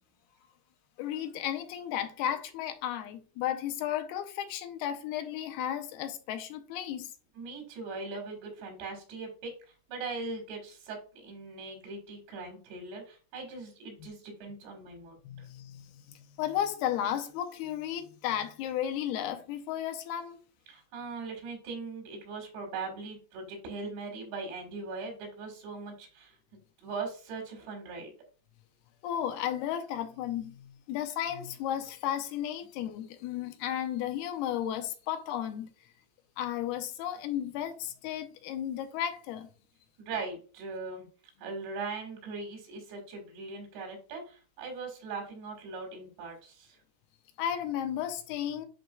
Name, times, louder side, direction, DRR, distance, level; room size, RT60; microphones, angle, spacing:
voice 1, 1.0-7.1 15.2-20.4 29.0-35.7 36.4-39.5 47.4-48.7, left 10 dB, 80° left, 2.6 m, -34 dB
voice 2, 7.4-9.5 9.9-15.5 20.7-26.4 26.8-28.1 40.0-41.1 41.4-46.8, right 4 dB, 85° right, 3.9 m, -40 dB
10.5 x 4.5 x 2.3 m
omnidirectional pair, 4.8 m